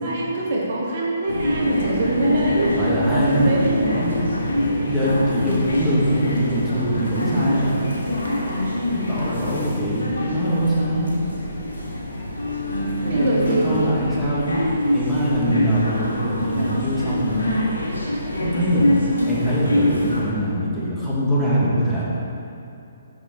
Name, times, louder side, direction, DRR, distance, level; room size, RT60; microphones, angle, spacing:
voice 1, 0.0-4.2 13.1-13.8, right 1 dB, 50° right, -3 dB, 1.3 m, -23 dB
sound 1, 1.3-20.2, left 1 dB, 80° left, 1.2 m, -24 dB
voice 2, 2.6-3.4 3.7-4.3 4.9-7.8 8.9-11.1 13.1-14.6 14.9-17.5 18.4-18.9 19.2-22.0, equal, 5° left, -10 dB, 1.6 m, -23 dB
6.6 x 5.6 x 4.3 m, 2.7 s
figure-of-eight pair, 135°, 0 cm